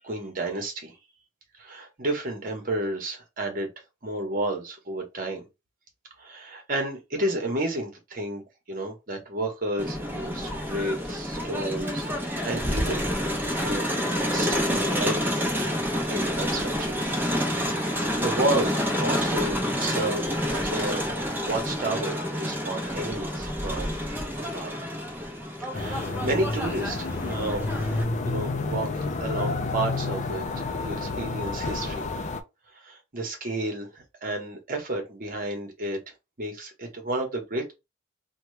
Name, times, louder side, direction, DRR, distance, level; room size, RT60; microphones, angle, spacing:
voice 1, 0.0-0.9 1.6-3.7 4.0-5.4 6.2-13.9 14.1-15.5 16.1-16.9 17.8-21.1 21.4-23.9 24.4-24.9 25.6-27.7 28.2-30.4 30.8-32.0 32.7-36.0 36.4-37.7, right 1 dB, 45° right, 1.1 m, -31 dB
Crowd, 9.8-28.0, equal, 10° right, 0.8 m, -28 dB
sound 1, 25.7-32.4, left 3 dB, 40° left, 0.4 m, -30 dB
2.9 x 2.3 x 3.1 m
head